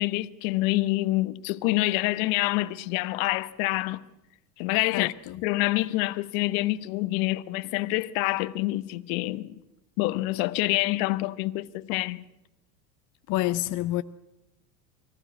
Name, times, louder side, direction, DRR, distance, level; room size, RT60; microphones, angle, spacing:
voice 1, 0.0-4.0 4.6-5.1 5.4-9.5 10.0-12.2, left 19 dB, 55° left, 1.1 m, -27 dB
voice 2, 4.9-5.4 13.3-14.0, left 16 dB, 40° left, 0.7 m, -28 dB
24.0 x 15.0 x 9.6 m
hypercardioid pair, 90°, 50 cm